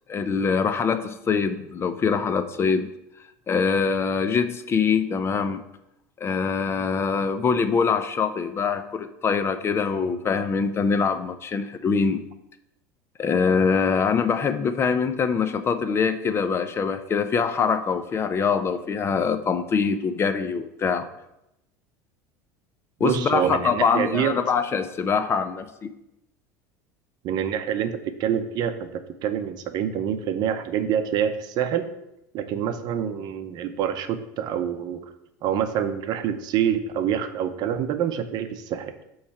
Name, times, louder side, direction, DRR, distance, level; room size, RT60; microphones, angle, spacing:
voice 1, 0.1-2.9 3.5-5.6 6.2-12.2 13.2-21.1 23.0-25.9, left 5 dB, 30° left, 10 dB, 0.5 m, -24 dB
voice 2, 23.0-24.3 27.2-31.9 32.3-35.0 35.4-38.9, right 9 dB, 50° right, 9 dB, 0.7 m, -26 dB
8.3 x 3.2 x 5.7 m, 0.86 s
supercardioid pair, 115°, 9 cm